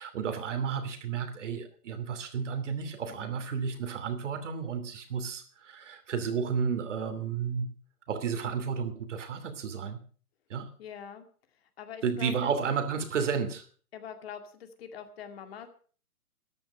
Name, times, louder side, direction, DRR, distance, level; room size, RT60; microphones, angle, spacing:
voice 1, 0.0-7.7 8.1-10.0 10.5-10.7 12.0-13.6, right 6 dB, 50° right, 8 dB, 2.9 m, -32 dB
voice 2, 3.1-3.4 10.8-11.3 11.5-12.5 13.9-15.7, left 8 dB, 40° left, 7 dB, 2.3 m, -44 dB
14.0 x 10.5 x 6.6 m, 0.43 s
figure-of-eight pair, 135°, 45 cm